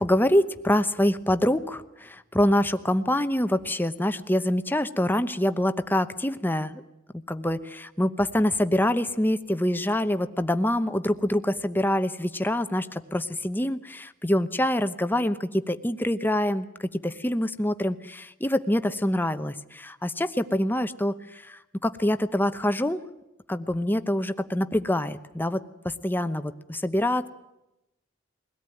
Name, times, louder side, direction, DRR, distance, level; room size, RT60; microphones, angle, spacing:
voice 1, 0.0-6.8 7.3-23.0 23.5-27.3, left 1 dB, 10° left, 10 dB, 0.9 m, -25 dB
22.5 x 17.5 x 9.2 m, 0.93 s
head